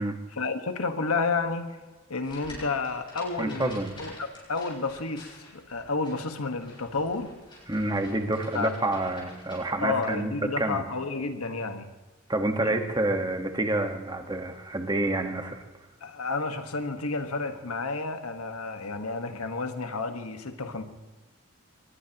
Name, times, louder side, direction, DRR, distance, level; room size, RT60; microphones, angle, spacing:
voice 1, 0.0-1.8 2.1-7.3 8.5-8.7 9.8-11.9 12.6-12.8 16.0-20.8, left 3 dB, 90° left, 1.4 m, -31 dB
sound 1, 2.2-10.1, left 1 dB, 20° left, 7.3 m, -49 dB
voice 2, 3.4-4.0 7.7-10.9 12.3-15.6, right 2 dB, 20° right, 1.3 m, -28 dB
23.0 x 20.5 x 2.9 m
head